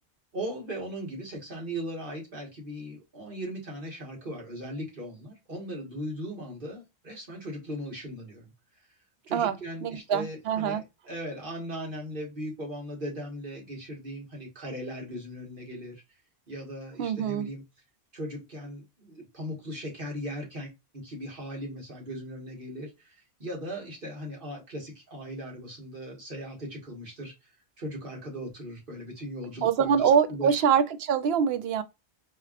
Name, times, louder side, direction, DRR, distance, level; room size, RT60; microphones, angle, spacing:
voice 1, 0.3-8.5 9.3-16.0 16.5-17.6 18.1-20.7 21.0-27.5 27.8-30.6, equal, 55° right, 1.6 m, -38 dB
voice 2, 9.8-10.8 17.0-17.5 29.6-31.8, right 7 dB, 75° right, 0.8 m, -24 dB
4.3 x 2.9 x 2.4 m
omnidirectional pair, 1.1 m